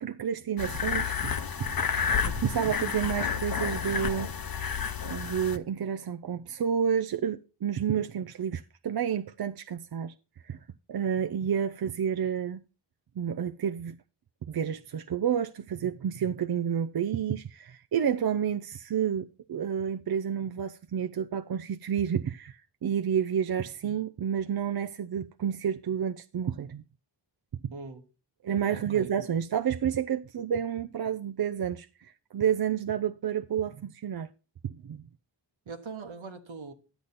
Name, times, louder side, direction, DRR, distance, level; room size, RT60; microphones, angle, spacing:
voice 1, 0.0-1.3 1.6-1.7 2.3-4.3 5.1-10.1 10.5-10.6 10.9-12.6 13.2-13.9 14.5-26.8 27.6-27.7 28.4-31.9 32.3-34.3 34.6-35.0, right 8 dB, 55° right, 0.5 m, -30 dB
sound 1, 0.6-5.6, left 6 dB, 50° left, 0.8 m, -30 dB
voice 2, 27.7-28.0 28.7-29.1 35.7-36.7, right 4 dB, 90° right, 1.2 m, -41 dB
11.0 x 8.1 x 4.1 m
cardioid pair, 50°, 46 cm